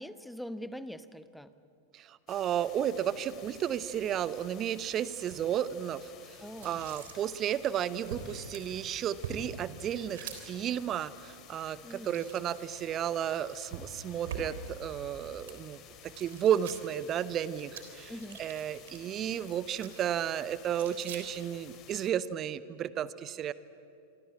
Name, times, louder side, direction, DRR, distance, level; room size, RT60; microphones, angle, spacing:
voice 1, 0.0-1.5 6.4-6.8 11.8-12.2 18.1-18.4, equal, ahead, 13 dB, 1.0 m, -43 dB
voice 2, 1.9-6.4 6.6-18.1 18.4-23.5, right 10 dB, 30° right, 17 dB, 0.8 m, -33 dB
sound 1, 2.3-22.1, left 9 dB, 35° left, 2.6 m, -54 dB
sound 2, 2.8-21.8, right 5 dB, 60° right, 3.6 m, -48 dB
27.0 x 24.5 x 8.7 m, 2.6 s
figure-of-eight pair, 90°, 0 cm